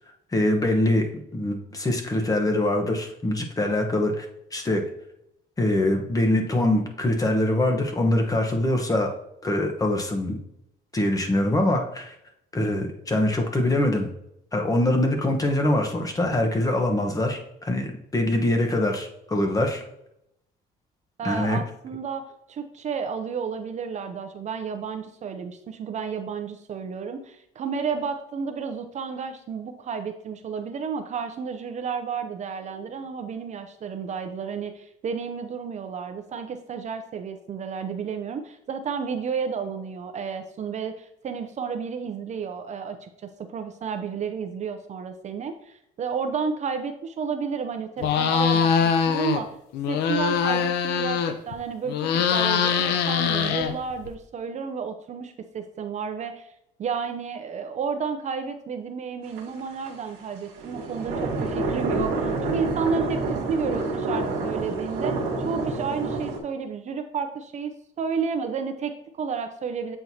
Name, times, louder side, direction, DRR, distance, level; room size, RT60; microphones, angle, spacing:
voice 1, 0.3-1.1 1.3-4.3 4.5-4.8 5.6-9.1 9.4-10.4 10.9-12.1 12.5-14.1 14.5-19.8 21.2-21.6, left 1 dB, 20° left, 3 dB, 1.1 m, -23 dB
voice 2, 21.2-49.5 49.9-56.5 56.8-70.0, right 6 dB, 45° right, 8 dB, 0.6 m, -31 dB
sound 1, 48.0-49.4 49.7-51.5 51.9-54.1, left 7 dB, 85° left, 0.7 m, -23 dB
sound 2, 59.4-59.9 60.6-66.4, right 3 dB, 80° right, 1.3 m, -28 dB
7.7 x 4.5 x 2.8 m, 0.78 s
cardioid pair, 110°, 17 cm